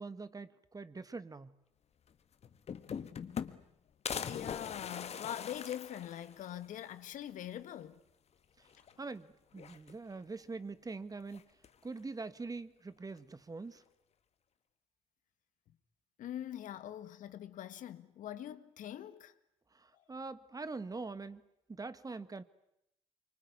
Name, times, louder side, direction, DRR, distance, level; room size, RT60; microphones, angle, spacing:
voice 1, 0.0-1.5 8.6-8.7 9.0-11.4 11.8-13.8 19.7-21.4 21.7-22.4, right 3 dB, 25° right, 1.6 m, -43 dB
sound 1, 2.1-2.2 2.4-3.7 4.1-6.7 7.1-7.2 7.4-7.5 8.7-9.2 9.5-10.3 11.3-11.9, left 7 dB, 50° left, 1.5 m, -42 dB
voice 2, 4.2-8.0 16.2-19.3 19.9-20.0, left 11 dB, 70° left, 1.6 m, -43 dB
25.0 x 24.0 x 9.7 m
supercardioid pair, 60°, 14 cm